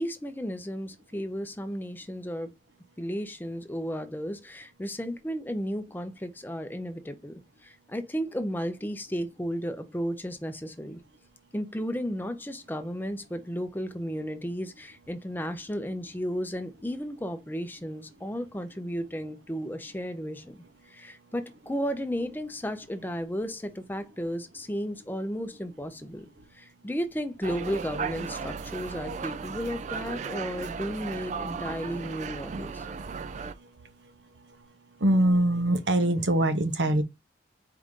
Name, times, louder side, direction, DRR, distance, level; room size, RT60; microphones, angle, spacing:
voice 1, 0.0-2.5 3.0-11.0 11.5-20.6 20.8-32.9, equal, 10° left, 0.5 m, -34 dB
sound 1, 27.4-33.5, right 5 dB, 40° right, 0.3 m, -36 dB
voice 2, 35.0-37.0, right 1 dB, 75° right, 0.8 m, -23 dB
4.6 x 2.6 x 3.6 m
head